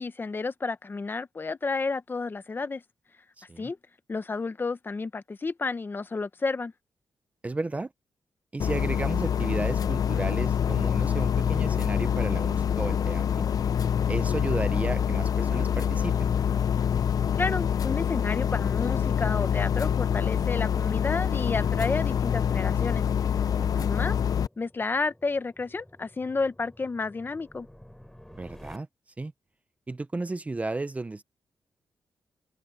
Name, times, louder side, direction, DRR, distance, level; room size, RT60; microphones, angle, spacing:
voice 1, 0.0-2.8 3.6-3.8 4.1-6.7 17.4-23.0 23.8-24.2 24.6-27.7, left 4 dB, 30° left, 0.8 m, -31 dB
voice 2, 3.4-3.7 7.4-7.9 8.5-13.5 14.1-16.3 23.6-23.9 28.3-28.9 29.2-29.3 29.9-31.2, right 2 dB, 20° right, 0.6 m, -33 dB
sound 1, 8.6-24.5, left 8 dB, 60° left, 0.6 m, -26 dB
sound 2, 21.1-28.8, left 1 dB, 5° left, 3.5 m, -55 dB
open air
wide cardioid pair, 125°, 7 cm